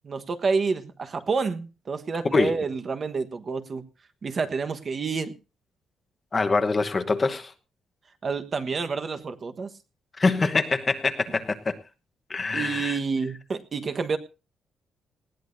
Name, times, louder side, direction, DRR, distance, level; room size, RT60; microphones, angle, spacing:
voice 1, 0.0-3.8 4.2-5.3 8.2-9.7 12.5-14.2, right 4 dB, 35° right, 1.2 m, -28 dB
voice 2, 6.3-7.5 10.2-11.8 12.3-13.0, left 3 dB, 25° left, 1.1 m, -24 dB
19.5 x 16.0 x 2.7 m
cardioid pair, 155°, 0 cm